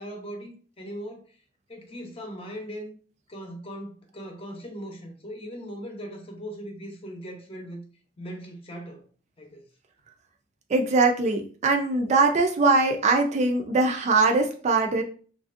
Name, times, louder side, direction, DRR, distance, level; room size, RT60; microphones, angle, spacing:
voice 1, 0.0-1.4 1.7-3.0 3.3-7.8 8.2-9.1 9.4-9.7, equal, 30° left, 0.7 m, -39 dB
voice 2, 10.7-15.0, right 3 dB, 40° right, 0.4 m, -22 dB
3.2 x 2.5 x 2.5 m
head